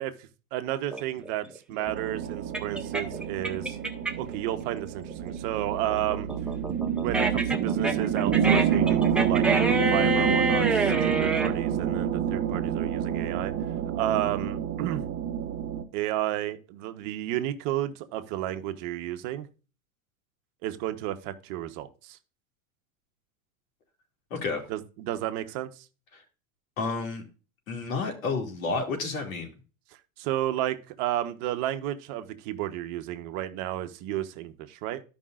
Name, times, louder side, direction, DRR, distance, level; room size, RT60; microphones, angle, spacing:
voice 1, 0.0-3.8 4.2-6.3 7.0-13.5 13.9-15.0 15.9-19.5 20.6-22.2 24.7-25.8 30.2-35.0, right 13 dB, 55° right, 9 dB, 1.1 m, -32 dB
sound 1, 0.9-4.3 4.7-11.5, right 2 dB, ahead, 1.4 m, -28 dB
sound 2, 1.9-15.8, right 9 dB, 35° right, 1.3 m, -28 dB
voice 2, 24.3-24.6 26.8-27.2 27.7-29.5, left 4 dB, 80° left, 3 dB, 2.5 m, -30 dB
14.5 x 5.3 x 2.5 m, 0.34 s
hypercardioid pair, 105°, 41 cm